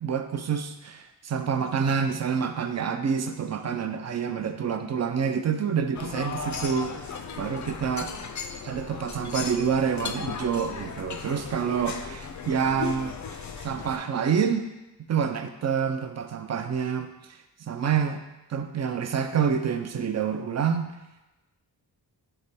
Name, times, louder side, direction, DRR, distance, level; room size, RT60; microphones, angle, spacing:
voice 1, 0.0-8.1 8.6-14.7 15.1-17.1 17.7-18.2 18.5-20.9, right 7 dB, 40° right, 8 dB, 0.4 m, -27 dB
sound 1, 5.9-14.0, left 5 dB, 45° left, 0.4 m, -36 dB
3.4 x 3.3 x 4.1 m, 1.0 s
cardioid pair, 65°, 42 cm